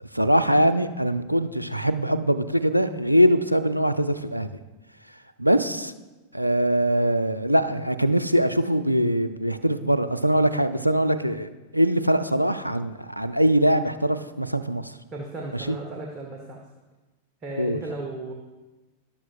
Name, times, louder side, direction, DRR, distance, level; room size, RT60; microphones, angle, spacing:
voice 1, 0.0-4.5 5.4-5.9 6.3-14.9 15.5-15.8 17.6-17.8, equal, 90° right, 11 dB, 0.4 m, -22 dB
voice 2, 15.1-16.6 17.4-18.3, right 2 dB, 30° right, 0 dB, 1.2 m, -35 dB
12.5 x 11.0 x 2.5 m, 1.2 s
figure-of-eight pair, 90°, 0 cm